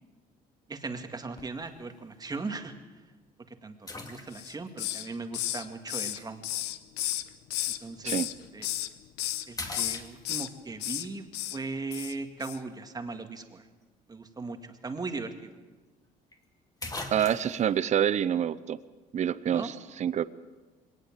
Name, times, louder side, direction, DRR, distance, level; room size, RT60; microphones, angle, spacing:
voice 1, 0.7-2.7 3.6-6.4 7.8-8.2 8.5-8.7 9.5-11.2 11.5-13.6 14.1-15.5 19.5-19.7, right 3 dB, 25° right, 6 dB, 2.0 m, -38 dB
sound 1, 1.4-1.7 2.3-2.4 3.9-4.7 6.2-6.3 8.4-8.6 9.1-9.2 9.6-10.6 14.8-14.9 15.1-15.2 16.3-16.4 16.8-17.7, left 2 dB, 20° left, 2.5 m, -40 dB
Hiss, 4.3-5.1 5.3-7.8 8.1-8.9 9.2-9.4 9.7-10.5 10.8-11.1 11.3-11.6 11.9-12.1 12.4-12.6, left 15 dB, 90° left, 0.9 m, -33 dB
voice 2, 17.1-18.8 19.1-20.2, right 9 dB, 45° right, 16 dB, 0.7 m, -27 dB
22.0 x 18.5 x 7.5 m, 1.3 s
cardioid pair, 110°, 17 cm